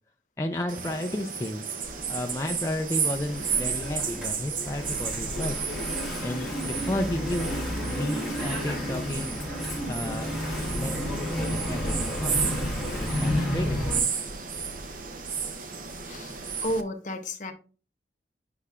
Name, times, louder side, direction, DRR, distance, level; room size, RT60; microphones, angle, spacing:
voice 1, 0.4-1.6 2.1-5.6 6.2-7.6 7.9-9.4 9.8-12.4 12.9-13.9, left 1 dB, 15° left, 0.4 m, -33 dB
sound 1, 0.7-16.8, right 6 dB, 50° right, 0.7 m, -33 dB
Engine / Mechanisms, 1.8-14.0, left 1 dB, ahead, 1.9 m, -32 dB
voice 2, 16.0-16.4 16.6-17.5, equal, 45° left, 0.9 m, -32 dB
8.4 x 5.5 x 2.4 m
head